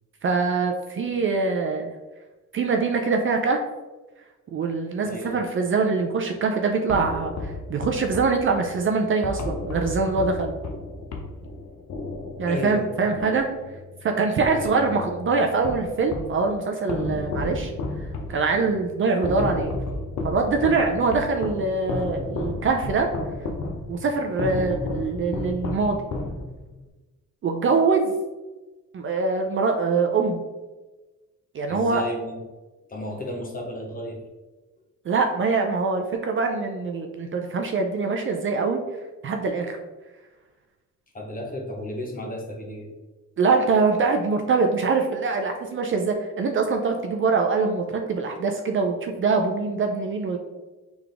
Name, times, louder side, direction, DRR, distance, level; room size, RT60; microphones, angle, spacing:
voice 1, 0.2-1.9 2.5-3.6 4.5-10.6 12.4-13.5 14.0-17.7 18.3-19.7 20.2-23.1 23.9-26.0 27.4-28.1 28.9-30.4 31.5-32.0 35.1-38.8 39.2-39.8 43.4-50.4, right 4 dB, 40° right, 4 dB, 0.4 m, -23 dB
voice 2, 5.1-5.4 12.5-12.9 14.5-14.8 24.5-24.7 31.7-32.4 32.9-34.2 41.1-42.9, equal, 25° left, 0 dB, 0.9 m, -33 dB
sound 1, 6.9-14.0 14.4-16.4 16.9-26.8, left 2 dB, 60° left, 0.7 m, -33 dB
3.9 x 3.5 x 3.3 m, 1.2 s
cardioid pair, 150°, 32 cm